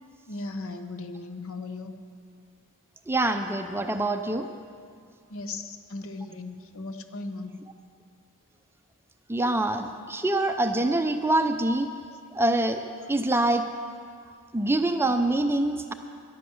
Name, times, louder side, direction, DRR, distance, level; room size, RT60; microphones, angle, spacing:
voice 1, 0.3-1.9 5.3-7.6, left 3 dB, 65° left, 8 dB, 0.9 m, -37 dB
voice 2, 3.1-4.5 9.3-11.9 12.3-12.8 13.1-13.6 14.5-15.9, right 1 dB, 10° right, 7 dB, 0.5 m, -25 dB
11.0 x 11.0 x 7.8 m, 2.3 s
head